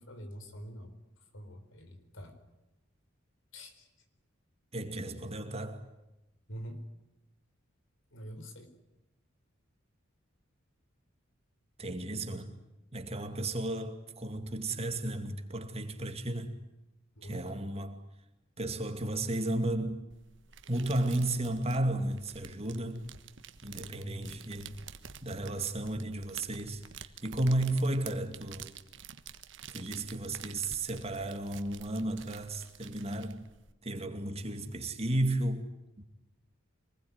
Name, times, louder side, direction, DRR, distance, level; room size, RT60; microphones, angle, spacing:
voice 1, 0.0-2.4 3.5-3.9 6.5-6.8 8.1-8.7 17.1-17.4 23.9-24.3 34.4-34.8, equal, 75° left, 4.3 m, -45 dB
voice 2, 4.7-5.9 11.8-12.6 12.9-16.6 17.2-18.0 18.6-20.0 20.7-23.1 23.6-24.7 25.2-28.7 29.7-33.5 33.8-35.7 36.0-36.1, right 1 dB, 30° right, 2.3 m, -33 dB
sound 1, 20.1-33.7, right 7 dB, 65° right, 1.4 m, -50 dB
26.0 x 20.0 x 9.6 m
head